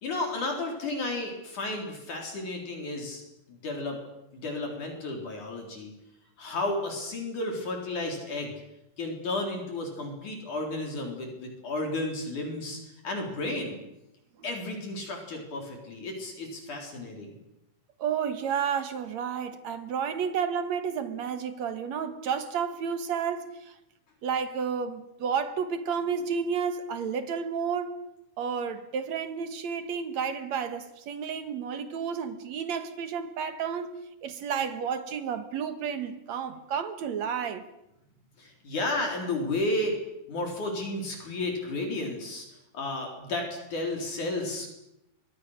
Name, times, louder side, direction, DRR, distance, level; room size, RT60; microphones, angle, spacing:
voice 1, 0.0-3.2 3.5-4.0 4.3-5.9 6.4-8.5 9.0-13.8 14.4-17.4 38.4-40.0 40.3-42.5 42.7-44.7, left 2 dB, 55° left, 5.3 m, -32 dB
voice 2, 18.0-23.8 24.2-27.9 28.4-33.9 34.2-37.6, right 7 dB, 60° right, 2.3 m, -31 dB
28.0 x 24.0 x 6.6 m
omnidirectional pair, 4.3 m